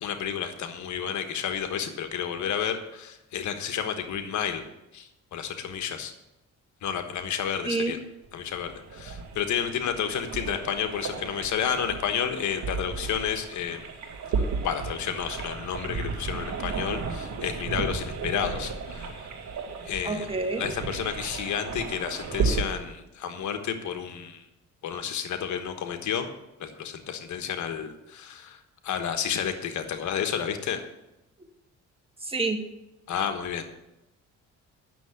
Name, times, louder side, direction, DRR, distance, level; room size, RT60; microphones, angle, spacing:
voice 1, 0.0-4.7 4.9-6.1 6.8-8.0 8.3-13.9 14.6-19.3 19.8-20.3 20.6-24.4 24.8-26.3 26.6-30.8 33.1-33.7, left 8 dB, 75° left, 7 dB, 1.3 m, -31 dB
voice 2, 7.6-8.0 20.0-20.7 32.2-32.6, right 3 dB, 20° right, 4 dB, 1.7 m, -28 dB
sound 1, 8.2-22.6, right 5 dB, 65° right, 2.0 m, -34 dB
9.4 x 6.8 x 8.0 m, 0.92 s
cardioid pair, 90°, 30 cm